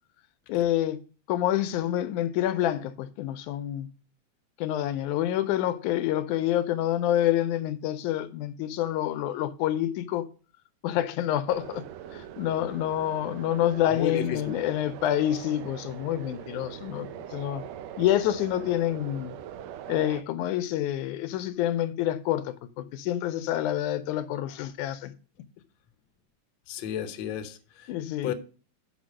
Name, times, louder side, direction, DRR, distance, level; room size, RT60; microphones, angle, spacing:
voice 1, 0.5-1.0 1.3-3.9 4.6-10.3 10.8-11.8 12.1-17.7 18.0-19.4 19.9-25.1 27.9-28.3, left 12 dB, 90° left, 2.1 m, -27 dB
sound 1, 11.5-20.2, right 10 dB, 75° right, 1.6 m, -42 dB
voice 2, 13.9-14.6 26.7-27.9 28.2-28.3, left 9 dB, 75° left, 1.1 m, -32 dB
6.2 x 5.8 x 6.2 m
omnidirectional pair, 3.5 m